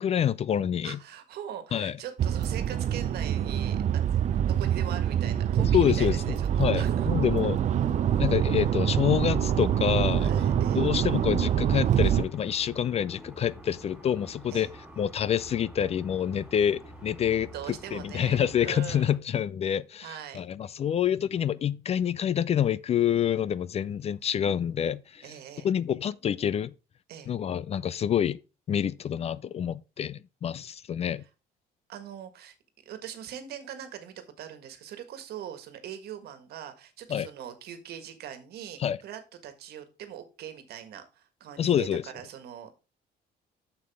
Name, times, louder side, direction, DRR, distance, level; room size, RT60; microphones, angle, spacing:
voice 1, 0.0-1.0 1.7-2.0 5.6-7.6 8.2-10.3 10.8-14.7 15.0-17.5 17.9-25.2 25.6-26.7 27.3-28.4 28.7-31.2 37.1-37.3 38.8-39.0 41.6-42.0, left 9 dB, 40° left, 0.4 m, -27 dB
voice 2, 0.8-4.1 4.4-6.5 6.7-7.1 10.2-10.9 14.5-14.7 17.5-19.2 20.0-20.4 25.2-25.7 27.1-27.3 31.9-32.5 32.8-41.9 42.1-42.7, right 9 dB, 70° right, 1.6 m, -42 dB
sound 1, 2.2-12.2, right 9 dB, 45° right, 0.6 m, -25 dB
sound 2, 7.9-19.2, right 1 dB, 5° right, 3.9 m, -47 dB
7.0 x 6.8 x 3.5 m
cardioid pair, 110°, 17 cm